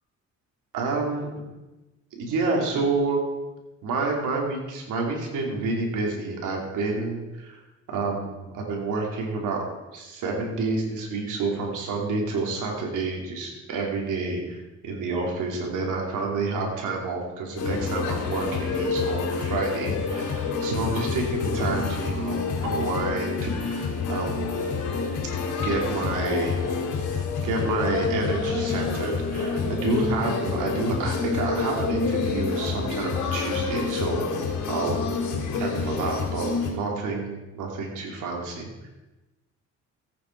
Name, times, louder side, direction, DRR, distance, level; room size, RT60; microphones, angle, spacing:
voice 1, 0.7-1.3 2.1-3.2 3.8-7.6 7.9-9.6 9.9-24.6 25.6-26.6 27.4-34.2 34.7-35.0 35.6-38.9, right 3 dB, 85° right, 0 dB, 3.1 m, -29 dB
sound 1, 17.6-36.7, left 4 dB, 80° left, 3.0 m, -28 dB
15.0 x 9.0 x 4.7 m, 1.1 s
cardioid pair, 90°, 30 cm